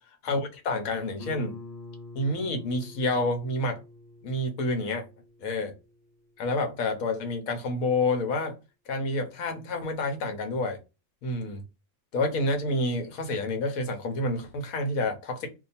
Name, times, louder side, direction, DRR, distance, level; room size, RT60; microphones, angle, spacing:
voice 1, 0.2-1.5 2.1-3.8 4.2-5.0 5.4-5.7 6.4-8.5 8.9-10.8 11.2-11.6 12.1-15.5, left 2 dB, 85° left, 1.3 m, -28 dB
Guitar, 1.2-6.6, left 3 dB, 30° left, 1.2 m, -46 dB
2.8 x 2.2 x 4.1 m
omnidirectional pair, 1.4 m